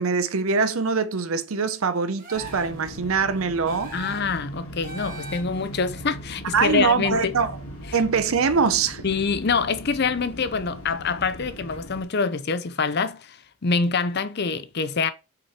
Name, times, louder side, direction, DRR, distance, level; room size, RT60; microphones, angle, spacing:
voice 1, 0.0-3.9 6.5-7.5 7.9-9.0, right 5 dB, 70° right, 0.7 m, -23 dB
sound 1, 2.2-2.9 3.7-4.4 4.8-5.7, right 3 dB, 40° right, 1.9 m, -40 dB
sound 2, 2.3-12.0, equal, 70° left, 2.4 m, -39 dB
voice 2, 3.9-7.3 7.9-8.0 9.0-15.1, left 5 dB, 50° left, 0.6 m, -25 dB
5.9 x 4.8 x 4.3 m
head